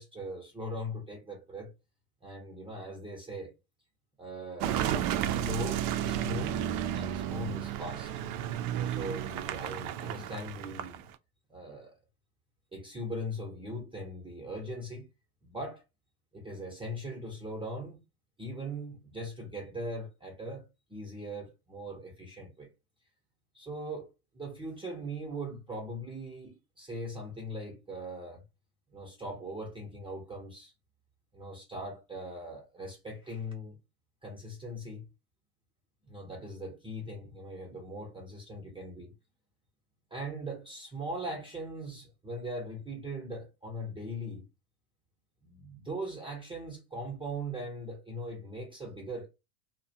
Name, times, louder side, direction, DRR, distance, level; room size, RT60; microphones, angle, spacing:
voice 1, 0.0-1.7 2.2-3.5 4.2-6.7 6.9-8.2 8.7-11.0 11.5-11.9 12.7-15.1 15.4-15.8 16.3-18.0 18.4-22.7 23.5-28.4 28.9-30.7 31.3-33.8 34.2-35.0 36.0-39.1 40.1-44.5 45.4-49.3, equal, 10° right, 0.7 m, -40 dB
Car passing by / Engine, 4.6-11.2, right 10 dB, 50° right, 0.4 m, -32 dB
2.3 x 2.1 x 2.8 m
hypercardioid pair, 85°, 44 cm